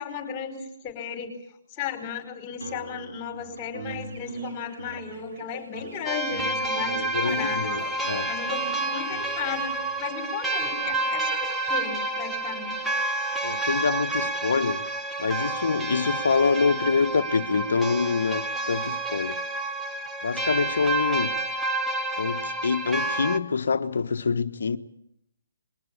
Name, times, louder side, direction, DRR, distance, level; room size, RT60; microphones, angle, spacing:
voice 1, 0.0-1.3 1.7-7.7 8.3-12.8, left 8 dB, 25° left, 4.9 m, -35 dB
sound 1, 2.6-10.0, right 4 dB, 80° right, 5.7 m, -41 dB
sound 2, 3.8-9.8, right 4 dB, 45° right, 5.3 m, -47 dB
sound 3, 6.1-23.4, right 2 dB, 5° right, 1.2 m, -29 dB
voice 2, 6.9-8.3 13.4-14.9 15.2-19.4 20.2-21.4 22.2-24.8, left 5 dB, 65° left, 1.1 m, -26 dB
22.0 x 19.0 x 8.6 m
figure-of-eight pair, 140°, 0 cm